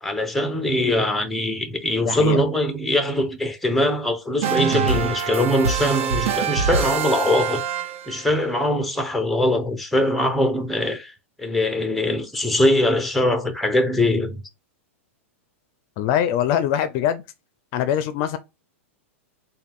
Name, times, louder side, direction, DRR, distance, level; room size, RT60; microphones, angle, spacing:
voice 1, 0.0-7.6 8.1-11.1 11.4-14.4, left 1 dB, ahead, 0.6 m, -22 dB
voice 2, 2.0-2.4 16.0-17.2 17.7-18.4, left 10 dB, 40° left, 0.4 m, -22 dB
sound 1, 4.4-8.3, right 6 dB, 70° right, 0.9 m, -24 dB
4.1 x 2.2 x 3.5 m
hypercardioid pair, 140°, 7 cm